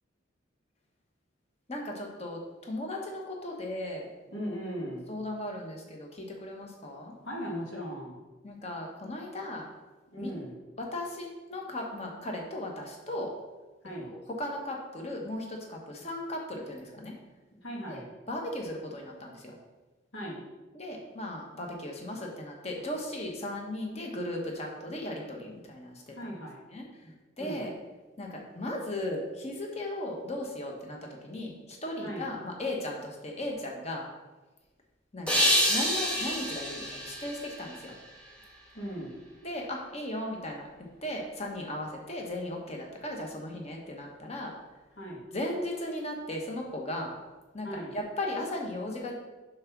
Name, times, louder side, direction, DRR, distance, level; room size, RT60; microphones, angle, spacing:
voice 1, 1.7-4.1 5.1-7.1 8.4-9.7 10.2-10.3 10.9-13.3 14.1-17.2 17.9-18.0 18.3-19.6 20.7-26.3 26.7-26.8 27.4-27.7 28.2-31.0 31.2-34.0 35.1-37.9 39.4-40.7 41.0-44.5 45.3-47.1 47.5-47.7 47.9-49.1, left 1 dB, 35° left, 0 dB, 1.1 m, -36 dB
voice 2, 4.3-5.1 7.2-8.2 10.1-10.6 13.8-14.1 17.5-18.1 20.1-20.4 26.1-26.6 27.0-27.1 27.4-27.6 32.0-32.3 38.7-39.2 44.9-45.3 47.6-47.9, equal, 75° left, -4 dB, 2.1 m, -38 dB
sound 1, 35.3-38.4, equal, 5° left, 1.4 m, -28 dB
7.5 x 3.5 x 6.0 m, 1.2 s
head